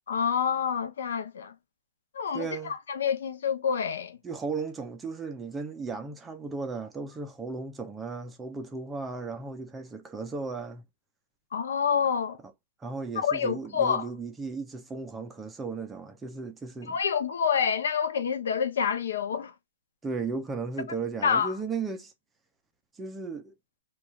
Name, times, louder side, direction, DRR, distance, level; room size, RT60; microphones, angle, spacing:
voice 1, 0.1-1.5 2.1-4.2 11.5-12.4 13.2-14.1 16.9-19.5 21.2-21.5, left 7 dB, 75° left, 0.6 m, -27 dB
voice 2, 2.3-2.7 4.2-10.8 12.8-17.0 20.0-22.1 22.9-23.5, right 4 dB, 10° right, 0.4 m, -35 dB
2.4 x 2.3 x 2.9 m
hypercardioid pair, 165°, 0 cm